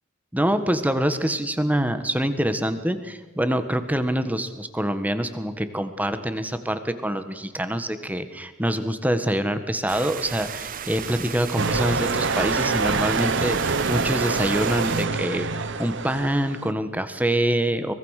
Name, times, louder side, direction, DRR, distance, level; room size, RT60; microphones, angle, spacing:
voice 1, 0.3-17.9, right 1 dB, 10° right, 10 dB, 1.5 m, -25 dB
sound 1, 9.9-15.0, right 8 dB, 45° right, 0.7 m, -35 dB
sound 2, 11.6-16.7, right 4 dB, 65° right, 1.2 m, -25 dB
24.5 x 21.0 x 6.6 m, 1.2 s
head